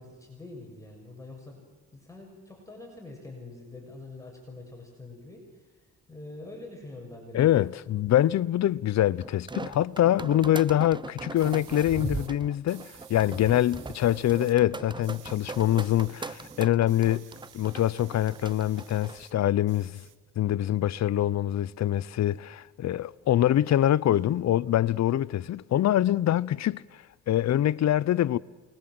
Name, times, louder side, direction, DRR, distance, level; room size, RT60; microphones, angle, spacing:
voice 1, 0.0-1.6 1.9-7.7, left 2 dB, 10° left, 6.8 m, -45 dB
voice 2, 7.3-17.2 17.5-20.0 20.4-28.4, left 12 dB, 60° left, 0.8 m, -24 dB
sound 1, 9.2-19.3, right 3 dB, 15° right, 0.8 m, -39 dB
sound 2, 11.4-12.3 12.7-14.6 14.8-19.3 19.6-20.6, right 11 dB, 90° right, 2.1 m, -53 dB
28.5 x 21.5 x 7.8 m
cardioid pair, 90°, 30 cm